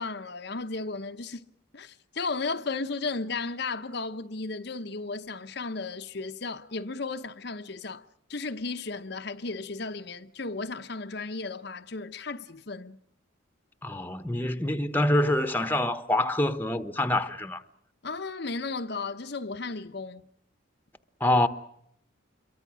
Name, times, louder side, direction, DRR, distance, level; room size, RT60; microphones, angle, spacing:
voice 1, 0.0-1.4 1.7-13.0 18.0-20.3, left 3 dB, 55° left, 0.9 m, -34 dB
voice 2, 13.8-17.6 21.2-21.5, left 1 dB, 10° left, 1.1 m, -26 dB
27.5 x 23.0 x 6.2 m
head